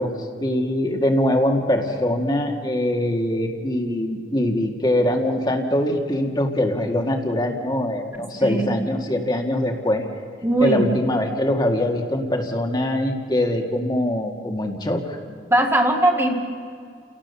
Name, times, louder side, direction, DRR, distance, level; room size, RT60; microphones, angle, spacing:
voice 1, 0.0-10.1 10.6-15.2, left 1 dB, 25° left, 2 dB, 1.8 m, -23 dB
voice 2, 8.4-8.8 10.4-10.8 15.5-16.3, right 1 dB, 15° right, 2 dB, 1.8 m, -19 dB
29.0 x 18.0 x 6.9 m, 2.3 s
head